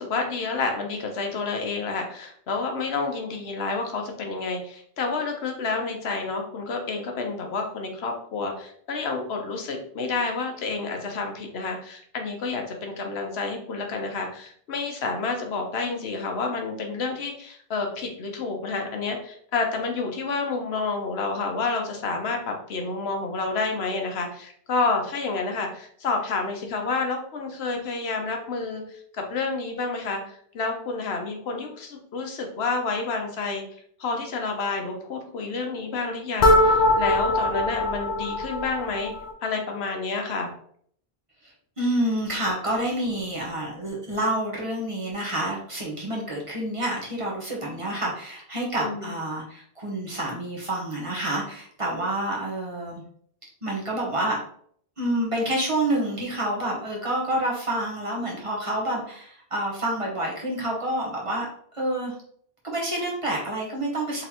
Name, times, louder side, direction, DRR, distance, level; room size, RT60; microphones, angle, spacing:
voice 1, 0.0-33.6 34.0-39.1 39.4-40.5 48.8-49.1, left 4 dB, 75° left, 3 dB, 1.0 m, -29 dB
sound 1, 36.4-39.3, left 1 dB, 55° left, 0.6 m, -22 dB
voice 2, 41.4-53.0 53.6-54.4 55.0-61.5 61.7-62.1 62.6-64.2, right 1 dB, 30° right, -3 dB, 1.0 m, -28 dB
4.0 x 3.1 x 2.8 m, 0.62 s
omnidirectional pair, 1.1 m